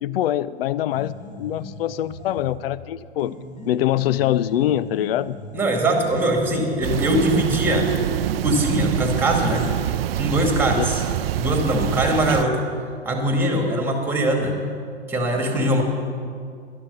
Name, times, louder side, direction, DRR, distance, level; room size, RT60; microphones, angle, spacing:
voice 1, 0.0-3.4 3.7-5.4 10.8-10.9, left 12 dB, 60° left, 18 dB, 0.5 m, -24 dB
sound 1, 0.9-2.7 3.2-6.7, left 2 dB, 20° left, 2.0 m, -39 dB
voice 2, 5.5-7.9 8.4-9.6 10.2-11.0 11.4-12.6 13.1-14.5 15.1-15.8, right 1 dB, 5° right, 2 dB, 2.1 m, -21 dB
sound 2, 6.8-12.4, right 12 dB, 60° right, 0.5 m, -25 dB
11.5 x 11.5 x 6.8 m, 2.2 s
hypercardioid pair, 125°, 33 cm